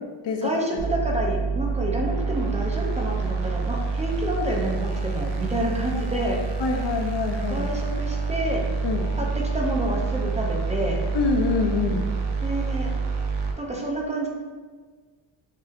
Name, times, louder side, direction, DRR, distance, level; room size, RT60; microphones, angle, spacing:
voice 1, 0.4-6.4 7.5-8.6 9.2-9.3 9.5-11.0 12.4-12.9 13.6-14.3, right 1 dB, 15° right, -2 dB, 0.5 m, -28 dB
sound 1, 0.8-13.5, right 4 dB, 55° right, 0.6 m, -27 dB
voice 2, 6.6-7.7 8.8-9.0 11.1-12.0, left 4 dB, 60° left, 3 dB, 0.7 m, -25 dB
6.3 x 2.8 x 2.5 m, 1.4 s
cardioid pair, 140°, 49 cm